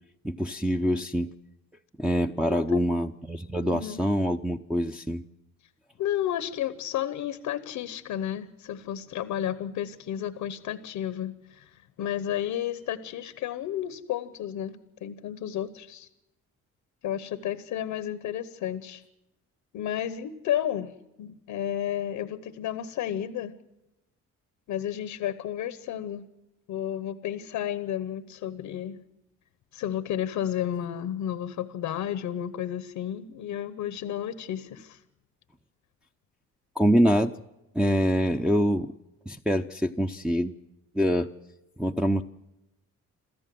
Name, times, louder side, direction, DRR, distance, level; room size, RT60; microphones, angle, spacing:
voice 1, 0.2-1.3 2.0-5.2 36.8-37.3 37.7-38.9 39.3-40.5 40.9-41.3 41.8-42.2, equal, 5° right, 0 dB, 0.7 m, -25 dB
voice 2, 2.5-2.8 3.6-4.0 6.0-16.1 17.0-19.0 19.7-23.5 24.7-26.2 26.7-29.0 29.7-35.0, left 10 dB, 85° left, 13 dB, 1.0 m, -32 dB
27.5 x 14.0 x 7.7 m, 0.93 s
cardioid pair, 90°, 30 cm